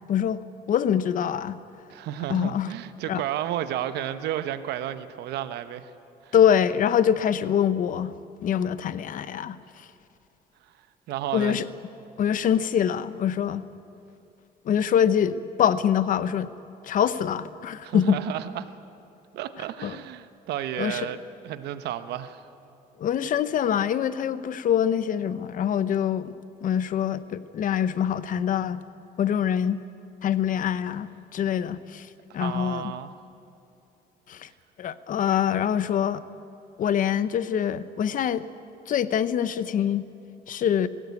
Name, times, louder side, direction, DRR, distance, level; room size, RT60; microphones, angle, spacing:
voice 1, 0.1-0.4 0.7-1.6 2.3-2.7 3.1-3.2 6.3-8.1 8.4-9.6 11.3-11.6 12.2-13.6 14.7-16.5 16.8-18.2 19.8-20.0 20.8-21.1 23.0-26.3 26.6-28.8 29.2-29.8 30.2-32.1 32.3-32.9 34.3-34.5 34.8-36.2 36.8-38.4 38.9-40.0 40.5-40.9, left 9 dB, 50° left, 14 dB, 0.8 m, -24 dB
voice 2, 1.9-5.9 6.2-6.3 11.1-11.6 17.8-18.7 19.3-22.5 32.3-33.1, right 11 dB, 80° right, 11 dB, 1.0 m, -32 dB
20.0 x 16.5 x 8.4 m, 2.7 s
cardioid pair, 110°, 17 cm